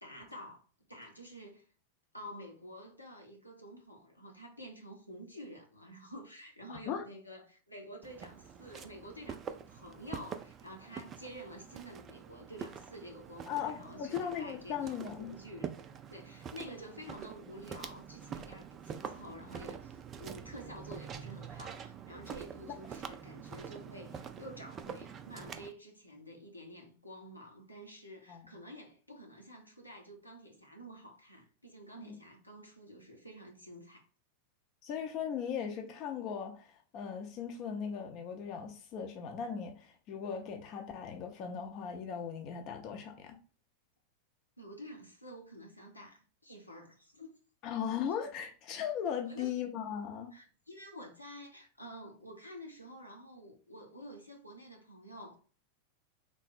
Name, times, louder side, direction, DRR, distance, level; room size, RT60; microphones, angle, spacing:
voice 1, 0.0-0.6 0.9-1.7 2.1-15.7 16.1-34.1 44.6-47.3 49.3-49.5 50.3-55.4, equal, 90° left, 0.7 m, -49 dB
Walk footsteps, 8.0-25.7, right 7 dB, 25° right, 0.3 m, -46 dB
voice 2, 13.5-15.3 28.3-28.5 32.0-32.1 34.8-43.4 47.6-50.3, left 8 dB, 40° left, 0.6 m, -38 dB
3.3 x 2.0 x 4.0 m
figure-of-eight pair, 90°, 0 cm